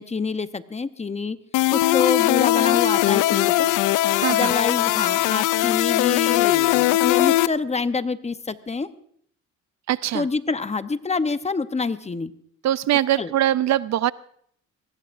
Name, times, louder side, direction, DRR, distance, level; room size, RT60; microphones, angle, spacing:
voice 1, 0.0-1.4 1.7-3.7 4.3-8.9 10.1-12.3 13.2-13.3, left 4 dB, 20° left, 11 dB, 0.8 m, -27 dB
sound 1, 1.5-7.5, left 16 dB, 90° left, 0.5 m, -20 dB
voice 2, 4.2-4.5 9.9-10.3 12.6-14.1, right 12 dB, 65° right, 17 dB, 0.5 m, -22 dB
23.0 x 19.5 x 2.6 m, 0.65 s
cardioid pair, 90°, 30 cm